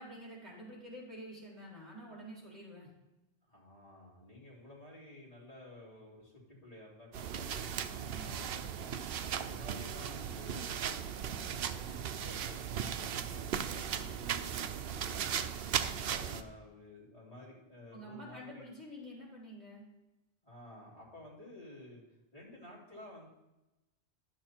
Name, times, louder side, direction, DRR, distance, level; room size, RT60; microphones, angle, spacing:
voice 1, 0.0-2.9 8.1-8.5 15.6-16.1 17.9-19.8, equal, 40° right, -4 dB, 4.0 m, -49 dB
voice 2, 3.5-9.0 9.4-15.3 16.0-18.7 20.4-22.0 22.3-23.3, left 1 dB, 35° left, -6 dB, 3.1 m, -53 dB
sound 1, 7.1-16.4, right 8 dB, 65° right, 0.8 m, -37 dB
11.0 x 7.2 x 4.4 m, 0.99 s
omnidirectional pair, 1.1 m